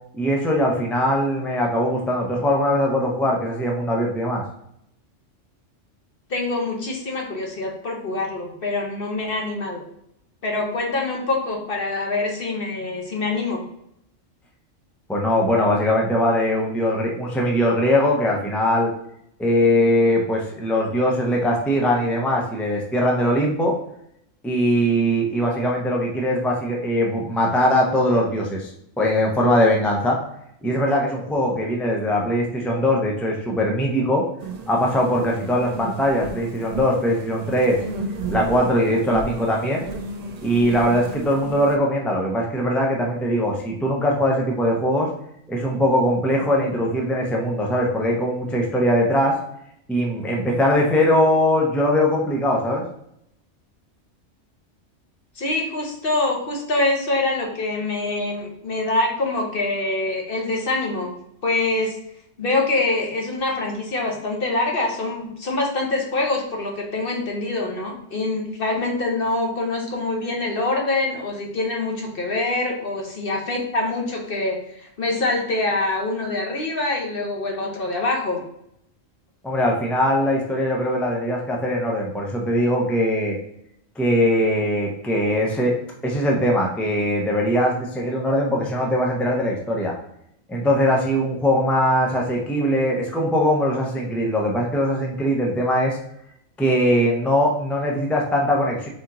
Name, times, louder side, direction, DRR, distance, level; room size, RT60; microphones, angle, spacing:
voice 1, 0.1-4.4 15.1-18.9 19.4-23.7 24.4-28.7 29.0-30.2 30.6-34.2 34.7-37.8 38.3-39.8 40.4-45.1 45.5-49.3 49.9-52.8 79.4-83.4 84.0-85.7 86.0-89.9 90.5-96.0 96.6-98.9, equal, ahead, -1 dB, 0.4 m, -21 dB
voice 2, 6.3-9.8 10.4-13.6 55.4-61.1 61.4-62.0 62.4-78.4, left 2 dB, 50° left, 0 dB, 1.1 m, -25 dB
sound 1, 34.4-41.8, right 3 dB, 85° right, 0.3 m, -33 dB
4.2 x 2.9 x 3.7 m, 0.75 s
omnidirectional pair, 1.3 m